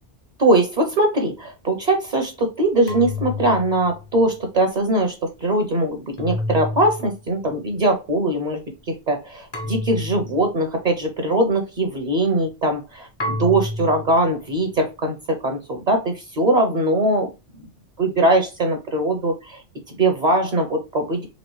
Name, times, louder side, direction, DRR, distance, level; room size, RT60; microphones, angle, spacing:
voice 1, 0.4-8.6 8.9-17.3 18.0-21.3, right 1 dB, 45° right, 4 dB, 0.6 m, -21 dB
sound 1, 2.9-4.3 6.2-7.2 9.5-10.5 13.2-14.2, left 2 dB, 35° left, 0.4 m, -29 dB
4.1 x 2.9 x 3.1 m, 0.27 s
omnidirectional pair, 1.3 m